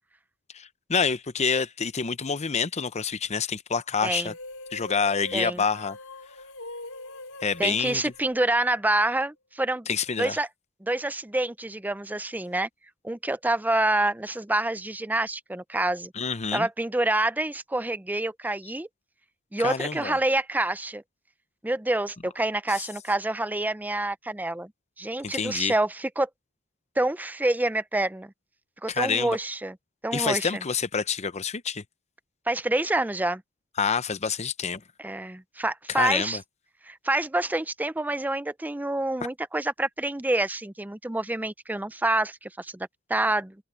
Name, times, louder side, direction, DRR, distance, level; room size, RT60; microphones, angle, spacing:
voice 1, 0.5-4.3 4.7-6.0 7.4-8.1 9.9-10.4 16.2-16.7 19.6-20.2 22.7-22.9 25.2-25.7 28.9-29.4 30.1-31.8 33.8-34.8 35.9-36.4, left 5 dB, 35° left, 0.7 m, -27 dB
sound 1, 4.2-8.9, left 2 dB, 75° left, 6.8 m, -42 dB
voice 2, 7.6-9.9 10.2-10.5 10.8-12.7 13.0-16.1 16.5-18.9 19.5-21.0 21.6-24.7 25.0-26.3 27.0-28.3 28.8-29.8 30.0-30.6 32.5-33.4 35.0-36.4 36.8-43.6, right 2 dB, 10° right, 0.5 m, -27 dB
head